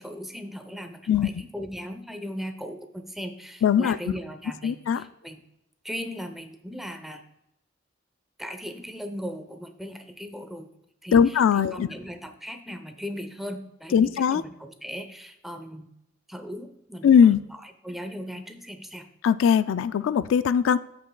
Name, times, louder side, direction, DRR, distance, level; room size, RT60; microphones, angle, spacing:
voice 1, 0.0-5.4 5.8-7.2 8.4-10.7 11.0-15.9 16.3-19.1, equal, ahead, 7 dB, 0.6 m, -38 dB
voice 2, 3.6-4.0 4.6-5.0 11.1-11.9 13.9-14.4 17.0-17.4 19.2-20.8, left 7 dB, 75° left, 15 dB, 0.3 m, -20 dB
14.0 x 5.6 x 2.2 m, 0.83 s
head